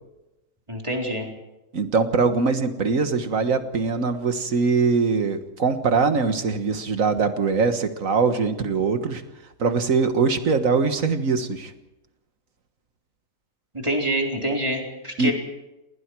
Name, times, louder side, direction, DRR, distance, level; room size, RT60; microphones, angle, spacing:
voice 1, 0.7-1.3 13.7-15.3, right 1 dB, 15° right, 0 dB, 3.9 m, -26 dB
voice 2, 1.7-9.2 9.6-11.7 15.2-15.3, right 4 dB, 45° right, 8 dB, 1.8 m, -22 dB
29.5 x 19.5 x 4.7 m, 0.97 s
omnidirectional pair, 2.1 m